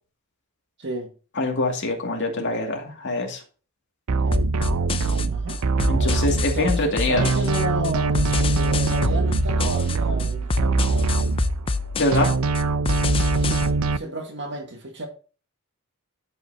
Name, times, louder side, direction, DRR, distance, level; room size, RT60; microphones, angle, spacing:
voice 1, 0.8-1.1 5.3-5.6 6.5-11.0 13.4-15.1, right 1 dB, 55° right, 1.8 m, -32 dB
voice 2, 1.4-3.4 5.9-7.2 11.9-12.3, left 2 dB, 55° left, 2.3 m, -24 dB
sound 1, 4.1-6.9 7.2-11.8 12.1-14.0, right 3 dB, 75° right, 0.5 m, -23 dB
sound 2, 4.3-13.7, left 3 dB, 25° left, 0.4 m, -27 dB
12.0 x 5.6 x 2.8 m
head